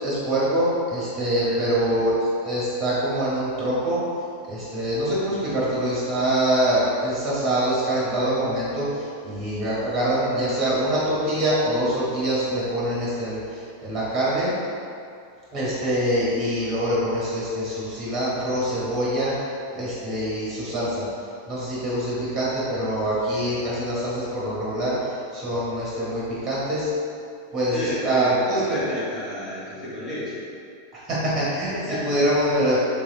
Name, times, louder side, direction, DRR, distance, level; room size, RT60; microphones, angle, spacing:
voice 1, 0.0-4.0 4.5-14.5 15.5-19.3 19.7-21.1 21.5-26.9 27.5-28.9 31.1-31.7 32.0-32.8, right 1 dB, 25° right, -7 dB, 1.2 m, -24 dB
voice 2, 1.4-2.0 27.7-30.4 31.5-32.2, left 1 dB, 25° left, -9 dB, 1.1 m, -32 dB
3.5 x 3.4 x 2.7 m, 2.4 s
figure-of-eight pair, 90°, 0 cm